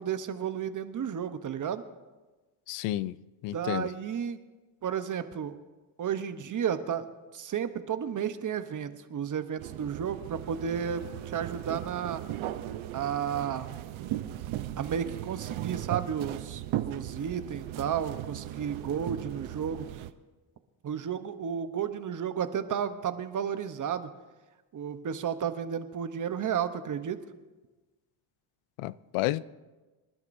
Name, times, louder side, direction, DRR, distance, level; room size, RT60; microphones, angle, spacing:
voice 1, 0.0-1.8 3.5-4.4 4.8-5.6 6.0-7.1 7.3-12.2 12.9-13.7 14.8-20.0 20.8-24.1 24.7-27.2, right 8 dB, 40° right, 0.9 m, -32 dB
voice 2, 2.7-3.9 28.8-29.4, left 15 dB, 85° left, 0.6 m, -31 dB
sound 1, 9.6-20.1, right 13 dB, 70° right, 0.8 m, -37 dB
26.5 x 11.5 x 2.6 m
cardioid pair, 110°, 50 cm